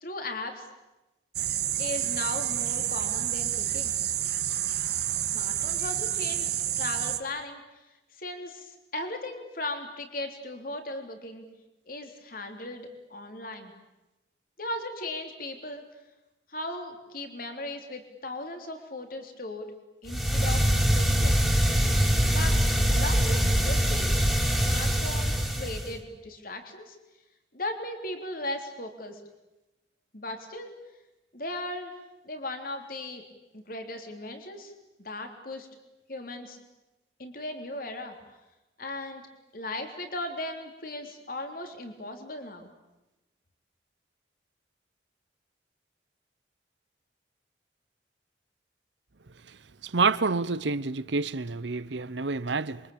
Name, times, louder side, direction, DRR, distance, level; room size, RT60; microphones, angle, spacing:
voice 1, 0.0-0.7 1.8-4.0 5.3-6.5 6.8-7.6 8.1-11.4 11.9-13.7 14.6-15.8 16.5-19.7 20.0-20.6 20.9-21.4 22.3-22.6 22.9-24.2 24.7-27.0 27.5-29.2 30.1-30.7 31.3-32.0 32.2-33.2 33.5-34.7 35.0-35.7 36.1-36.6 37.2-38.2 38.8-39.2 39.5-42.7, left 2 dB, 50° left, 3.5 m, -37 dB
sound 1, 1.3-7.2, right 11 dB, 60° right, 1.7 m, -29 dB
sound 2, 20.1-26.0, equal, ahead, 3.1 m, -24 dB
voice 2, 49.9-52.8, right 4 dB, 85° right, 0.9 m, -28 dB
27.0 x 24.0 x 8.7 m
head